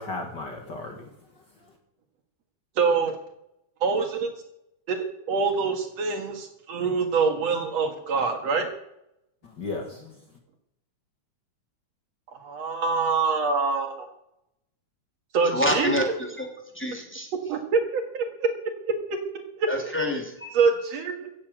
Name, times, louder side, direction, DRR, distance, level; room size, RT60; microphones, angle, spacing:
voice 1, 0.0-1.7 9.4-10.2, left 3 dB, 40° left, 3 dB, 2.1 m, -36 dB
voice 2, 2.8-3.2 3.8-4.3 4.9-8.7 12.4-14.1 15.3-16.2 17.5-18.5 19.3-19.7 20.5-21.3, right 5 dB, 65° right, 5 dB, 2.8 m, -25 dB
voice 3, 15.5-16.0 16.4-16.5 16.7-17.3 19.7-20.5, left 1 dB, 5° left, 1 dB, 2.8 m, -27 dB
16.0 x 8.7 x 7.7 m, 0.83 s
omnidirectional pair, 3.3 m